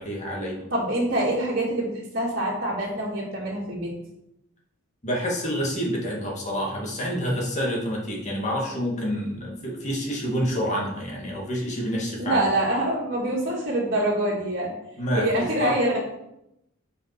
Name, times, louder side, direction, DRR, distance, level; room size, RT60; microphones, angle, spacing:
voice 1, 0.0-0.6 5.0-12.4 15.0-15.8, equal, 35° left, -3 dB, 2.1 m, -28 dB
voice 2, 0.7-3.9 12.2-14.7 15.2-16.0, right 1 dB, 50° right, -7 dB, 2.1 m, -25 dB
6.5 x 5.2 x 6.0 m, 0.84 s
head